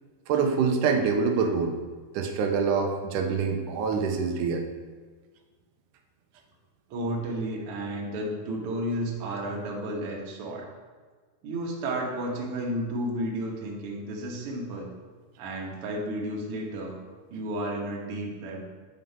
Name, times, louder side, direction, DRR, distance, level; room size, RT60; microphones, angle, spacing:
voice 1, 0.3-1.8 2.1-4.7, right 5 dB, 80° right, 4 dB, 2.1 m, -25 dB
voice 2, 6.9-10.7 11.4-14.9 15.4-17.0 17.3-18.6, right 1 dB, 55° right, -2 dB, 1.7 m, -32 dB
9.1 x 3.8 x 5.4 m, 1.4 s
omnidirectional pair, 3.7 m